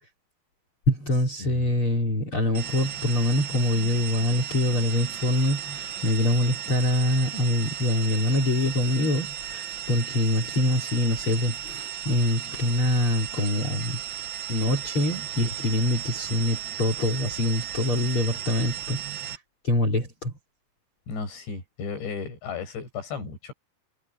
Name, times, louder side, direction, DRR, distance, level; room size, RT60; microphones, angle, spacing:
voice 1, 0.9-14.0 14.5-19.4 19.6-20.3, left 1 dB, 30° left, 4.2 m, -25 dB
sound 1, 2.5-19.4, right 10 dB, 55° right, 1.3 m, -35 dB
voice 2, 21.1-23.5, left 5 dB, 75° left, 9.2 m, -34 dB
omnidirectional pair, 5.1 m